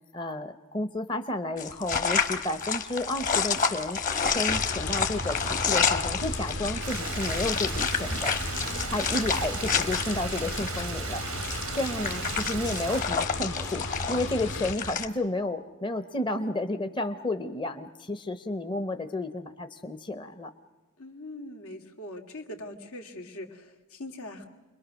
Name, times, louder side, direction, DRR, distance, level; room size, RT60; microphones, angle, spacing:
voice 1, 0.1-4.0 4.3-8.3 8.9-20.5, left 2 dB, 20° left, 8 dB, 0.8 m, -32 dB
sound 1, 1.6-15.1, left 6 dB, 40° left, 1.3 m, -30 dB
sound 2, 4.5-14.7, left 1 dB, 55° left, 1.4 m, -35 dB
Stream, 6.8-13.0, right 7 dB, 85° right, 0.8 m, -37 dB
voice 2, 8.6-9.2 12.0-12.5 21.0-24.5, left 1 dB, 85° left, 3 dB, 2.4 m, -42 dB
29.0 x 22.0 x 6.3 m, 1.2 s
head